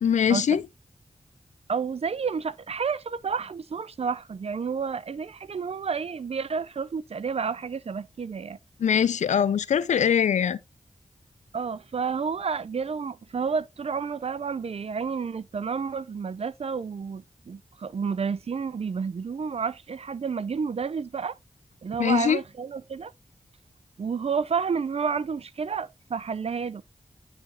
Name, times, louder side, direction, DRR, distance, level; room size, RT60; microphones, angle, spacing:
voice 1, 0.0-0.6 8.8-10.6 22.0-22.4, left 8 dB, 90° left, 0.4 m, -22 dB
voice 2, 1.7-8.6 11.5-21.4 21.8-23.1 24.0-26.8, right 5 dB, 60° right, 0.5 m, -30 dB
9.6 x 4.9 x 2.4 m
cardioid pair, 50°, 12 cm